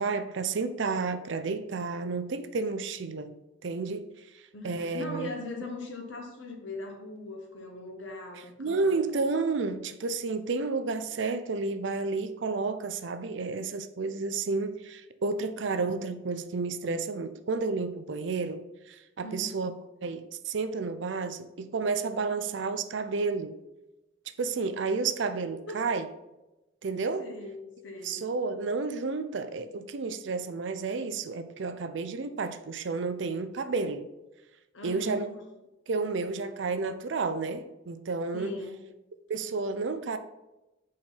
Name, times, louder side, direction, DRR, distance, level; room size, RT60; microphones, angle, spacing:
voice 1, 0.0-3.3 3.6-4.1 4.6-5.3 8.6-19.7 20.0-23.5 24.4-26.1 26.8-27.3 28.0-34.1 34.8-35.3 35.9-38.5 39.3-40.2, right 4 dB, 65° right, 0.5 m, -31 dB
voice 2, 4.5-9.2 19.2-19.6 25.7-25.8 27.2-28.3 34.7-35.4 38.3-38.8, left 2 dB, 70° left, 1.3 m, -40 dB
4.8 x 4.4 x 5.4 m
head